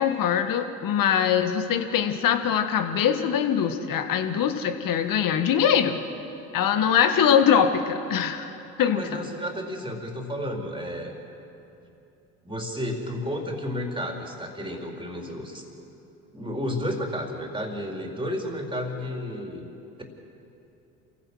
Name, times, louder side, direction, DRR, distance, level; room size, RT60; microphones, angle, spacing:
voice 1, 0.0-6.0 6.5-8.5 8.8-9.2, left 8 dB, 55° left, 7 dB, 1.8 m, -22 dB
voice 2, 8.8-11.1 12.4-15.6 16.3-19.7, equal, 10° right, 1 dB, 4.3 m, -32 dB
27.5 x 16.0 x 6.4 m, 2.9 s
hypercardioid pair, 70°, 40 cm